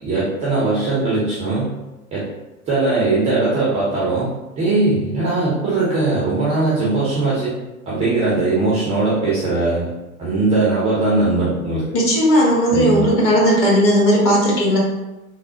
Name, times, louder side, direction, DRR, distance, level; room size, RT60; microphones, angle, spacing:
voice 1, 0.0-1.7 2.1-2.3 2.7-4.3 4.6-7.5 7.9-9.9 10.2-11.9 12.7-13.1, right 3 dB, 15° right, -7 dB, 0.5 m, -19 dB
voice 2, 11.9-14.8, equal, 30° left, -5 dB, 1.1 m, -16 dB
3.2 x 2.0 x 2.7 m, 1.0 s
figure-of-eight pair, 95°, 43 cm